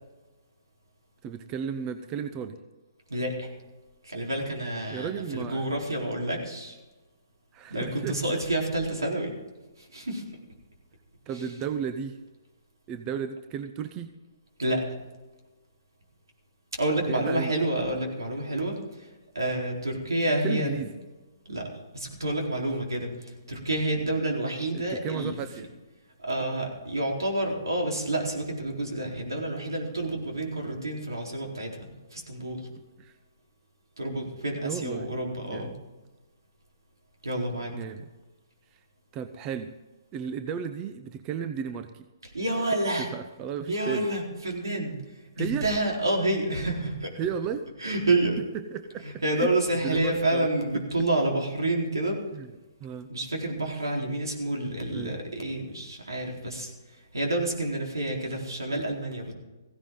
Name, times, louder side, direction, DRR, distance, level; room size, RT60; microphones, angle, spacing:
voice 1, 1.2-2.6 4.9-5.7 7.5-8.4 11.3-12.2 12.9-14.1 17.1-17.5 20.4-20.9 24.7-25.7 32.7-33.1 34.6-35.1 35.5-35.7 37.7-38.1 39.1-39.7 40.1-42.0 43.0-44.1 45.4-45.7 47.2-47.6 48.7-49.1 49.3-49.5 49.8-50.5 52.3-52.5 52.8-53.1 54.9-55.2, right 7 dB, 25° right, 9 dB, 0.8 m, -34 dB
voice 2, 3.1-3.5 4.0-6.8 7.7-9.3 9.8-10.2 11.3-11.4 14.6-15.0 16.7-19.1 19.3-20.8 21.5-21.7 21.9-25.4 26.2-32.6 34.0-35.7 37.2-37.7 42.3-43.1 43.7-45.0 45.4-47.1 47.8-48.4 49.0-52.2 53.1-56.7 57.1-59.3, right 1 dB, 85° right, 0 dB, 4.1 m, -29 dB
16.0 x 16.0 x 3.9 m, 1.2 s
hypercardioid pair, 135°, 2 cm